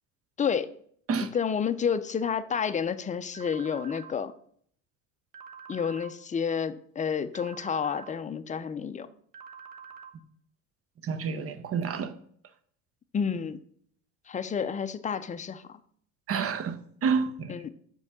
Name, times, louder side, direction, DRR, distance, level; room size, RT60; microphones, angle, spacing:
voice 1, 0.4-0.7 1.3-4.3 5.7-9.1 13.1-13.6 14.3-15.6 17.5-17.7, left 7 dB, 20° left, 0.5 m, -30 dB
sound 1, 3.3-4.1 5.3-6.1 7.3-8.1 9.3-10.1, right 6 dB, 55° right, 1.1 m, -46 dB
voice 2, 11.0-12.1 16.3-17.5, right 6 dB, 35° right, 0.9 m, -29 dB
5.3 x 4.6 x 6.1 m
supercardioid pair, 85°, 39 cm